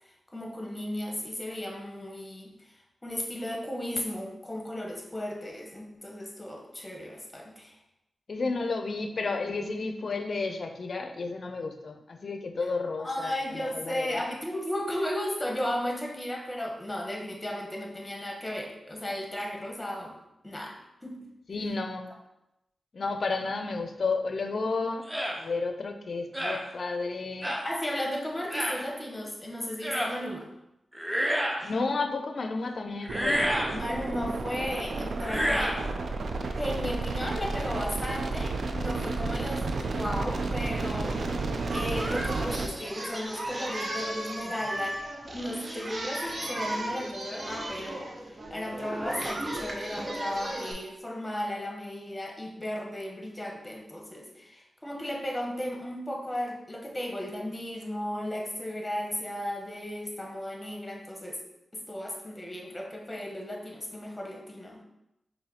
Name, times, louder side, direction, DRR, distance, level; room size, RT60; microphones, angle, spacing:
voice 1, 0.3-2.7 3.0-7.8 13.0-20.1 20.4-20.8 21.0-21.3 27.6-30.5 33.7-35.8 36.6-45.0 45.3-61.4 61.7-64.8, left 1 dB, 20° left, 1 dB, 1.0 m, -35 dB
voice 2, 8.3-13.4 13.7-14.2 21.5-22.1 22.9-25.1 25.4-27.5 31.6-33.5, left 3 dB, 60° left, 6 dB, 0.4 m, -32 dB
sound 1, 25.1-25.4 26.3-26.6 27.4-27.7 28.5-28.8 29.8-30.1 30.9-31.7 33.0-33.8 35.2-35.8, equal, 10° right, 0.7 m, -29 dB
sound 2, 33.1-42.7, right 3 dB, 75° right, 0.4 m, -32 dB
Singing, 40.8-50.7, right 1 dB, 45° right, 0.7 m, -36 dB
4.8 x 2.7 x 2.8 m, 0.88 s
cardioid pair, 50°, 0 cm